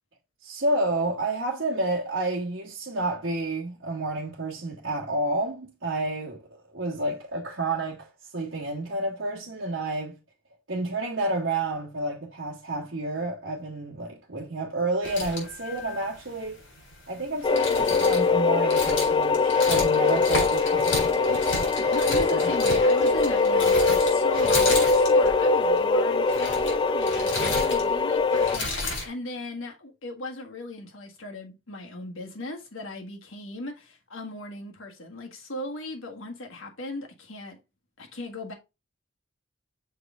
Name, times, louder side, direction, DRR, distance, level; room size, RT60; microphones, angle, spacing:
voice 1, 0.4-10.2 10.7-16.6 17.1-21.5 22.3-22.5, right 2 dB, 60° right, 1.4 m, -30 dB
sound 1, 15.0-29.1, left 2 dB, 70° left, 4.1 m, -33 dB
sound 2, 17.4-28.6, left 4 dB, 25° left, 0.3 m, -22 dB
voice 2, 21.7-37.6 38.0-38.5, left 2 dB, 85° left, 1.7 m, -37 dB
6.5 x 4.8 x 3.7 m
head